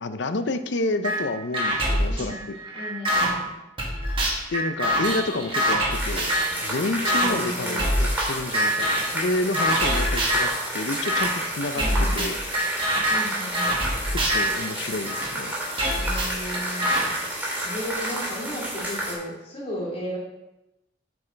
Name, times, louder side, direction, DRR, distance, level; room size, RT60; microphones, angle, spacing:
voice 1, 0.0-2.6 4.5-6.3 6.6-11.8 12.1-12.4 14.3-15.5, left 2 dB, 75° left, 10 dB, 0.6 m, -29 dB
sound 1, 1.0-1.2 1.5-3.3 3.8-6.6 7.0-7.3 7.8-8.3 8.5-9.1 9.5-10.5 11.0-11.3 11.8-15.3 15.8-17.0, equal, 30° right, 1.8 m, -24 dB
voice 2, 2.1-2.4 2.7-3.5 7.0-7.9 11.7-12.3 13.1-13.7 15.9-16.9 17.6-20.2, equal, 35° left, -4 dB, 2.9 m, -34 dB
sound 2, 5.9-19.1, right 1 dB, 10° right, 2.5 m, -31 dB
8.6 x 7.8 x 3.4 m, 0.95 s
head